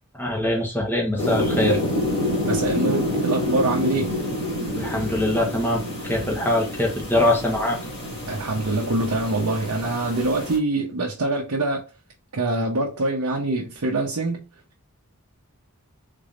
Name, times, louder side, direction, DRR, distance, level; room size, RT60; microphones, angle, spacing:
voice 1, 0.2-1.8 4.7-7.8, left 1 dB, 10° left, 1.0 m, -23 dB
fw-audio-raw, 1.2-10.6, left 1 dB, 30° left, 2.0 m, -28 dB
voice 2, 2.4-4.2 8.3-11.8 12.3-14.5, right 2 dB, 85° right, 0.8 m, -24 dB
3.7 x 3.4 x 2.5 m
head